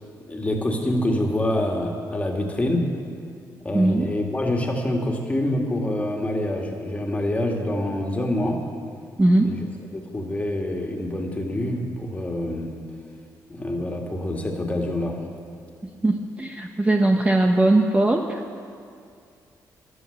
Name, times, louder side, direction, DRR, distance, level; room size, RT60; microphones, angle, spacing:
voice 1, 0.3-2.8 3.6-8.6 9.4-9.7 9.9-12.7 13.5-15.2, left 1 dB, 20° left, 1 dB, 2.2 m, -26 dB
voice 2, 3.7-4.1 9.2-9.5 16.0-18.4, right 2 dB, 15° right, 3 dB, 0.9 m, -19 dB
14.5 x 11.5 x 6.7 m, 2.3 s
cardioid pair, 100°, 7 cm